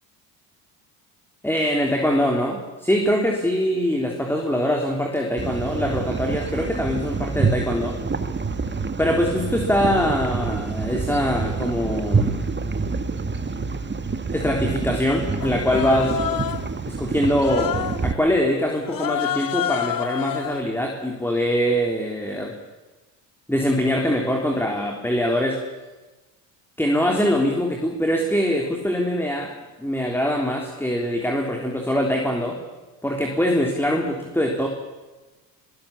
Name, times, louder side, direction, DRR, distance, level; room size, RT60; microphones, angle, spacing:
voice 1, 1.4-8.0 9.0-12.3 14.3-16.2 16.9-17.7 18.0-22.5 23.5-25.6 26.8-29.5 29.8-32.6 33.0-34.7, equal, 5° left, 1 dB, 3.6 m, -23 dB
sound 1, 5.4-18.1, right 4 dB, 20° right, 2.0 m, -27 dB
Human voice, 15.4-16.7 17.4-18.1 18.9-20.6, left 11 dB, 45° left, 1.3 m, -28 dB
22.0 x 19.0 x 8.7 m, 1.2 s
hypercardioid pair, 65°, 49 cm